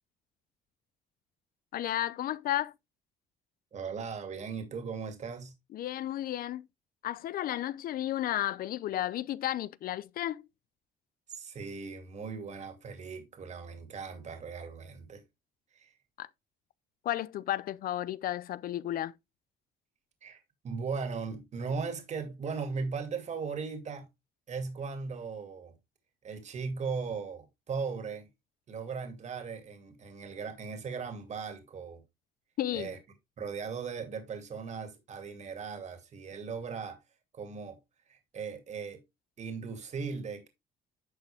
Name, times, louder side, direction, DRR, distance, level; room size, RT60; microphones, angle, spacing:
voice 1, 1.7-2.7 5.7-6.7 7.0-10.4 16.2-16.3 17.0-19.1 32.6-32.9, left 13 dB, 60° left, 0.5 m, -33 dB
voice 2, 3.7-5.5 11.3-15.2 15.7-15.9 20.2-20.4 20.6-24.1 24.5-25.7 26.2-28.3 28.7-32.0 32.7-33.0 33.4-37.0 37.3-37.8 38.1-39.0 39.4-40.5, right 5 dB, 45° right, 2.6 m, -38 dB
11.0 x 6.0 x 3.4 m
cardioid pair, 110°, 17 cm